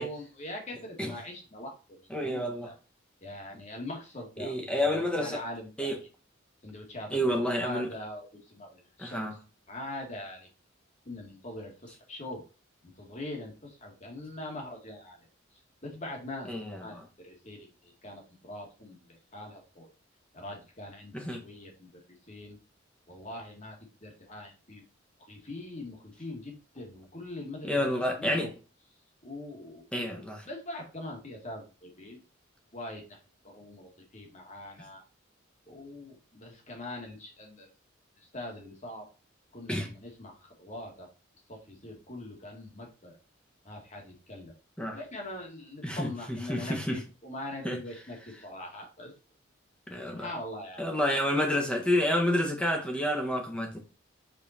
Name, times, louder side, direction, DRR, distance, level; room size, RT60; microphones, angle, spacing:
voice 1, 0.0-1.7 2.2-2.7 3.2-4.5 4.8-5.9 6.6-9.3 9.7-10.5 11.1-12.4 12.8-15.3 15.8-19.0 19.3-19.9 20.3-22.6 23.1-24.8 25.3-28.5 29.2-32.2 32.7-33.2 33.4-35.0 35.7-37.7 38.3-39.0 39.5-41.1 41.5-43.1 43.6-44.5 44.9-49.1 50.1-50.8, left 1 dB, 35° left, 2.0 m, -42 dB
voice 2, 2.1-2.7 4.4-5.4 5.8-6.0 7.1-7.9 9.0-9.4 16.5-17.1 21.1-21.4 27.6-28.5 29.9-30.4 39.7-39.9 44.8-45.0 45.8-47.0 47.6-47.8 49.9-50.3 50.8-53.8, left 1 dB, 5° left, 1.3 m, -29 dB
5.4 x 4.3 x 4.3 m
head